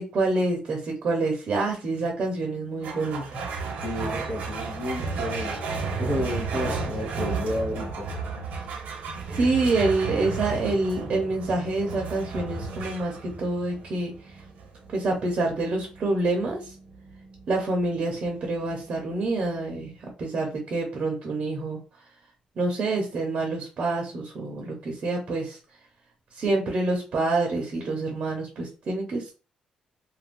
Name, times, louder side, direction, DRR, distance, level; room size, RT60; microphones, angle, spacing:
voice 1, 0.0-3.4 9.3-14.1 14.9-16.7 17.5-21.8 22.6-25.6 26.4-29.3, right 2 dB, 45° right, 0 dB, 0.7 m, -27 dB
sound 1, 2.8-19.6, right 4 dB, 85° right, 0.8 m, -34 dB
voice 2, 3.8-5.6 6.0-8.1, left 2 dB, 40° left, -5 dB, 0.8 m, -31 dB
2.5 x 2.2 x 3.5 m, 0.34 s
cardioid pair, 160°, 3 cm